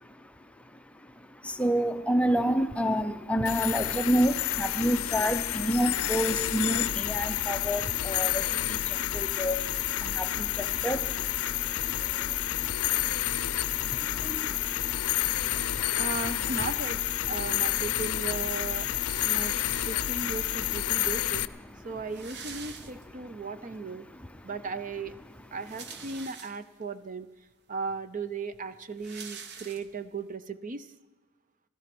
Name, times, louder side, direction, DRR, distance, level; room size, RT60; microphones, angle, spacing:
voice 1, 0.2-16.1 18.9-19.9 20.9-21.0 21.7-21.8 22.6-24.5, equal, 5° left, 8 dB, 0.6 m, -31 dB
sound 1, 3.5-21.5, left 13 dB, 80° left, 0.5 m, -29 dB
sound 2, 7.1-23.2, left 2 dB, 20° right, 2.8 m, -56 dB
voice 2, 16.0-17.0 17.3-18.9 19.2-19.6 19.8-21.4 21.8-24.1 24.4-25.1 25.5-27.3 27.7-30.9, right 4 dB, 40° right, 12 dB, 0.6 m, -36 dB
sound 3, 18.9-20.3 21.2-21.3 21.5-21.6 21.8-23.4 23.9-24.0 25.4-26.9 27.5-27.6 27.9-30.2, right 6 dB, 55° right, 1.0 m, -46 dB
16.5 x 13.0 x 6.0 m, 1.2 s
head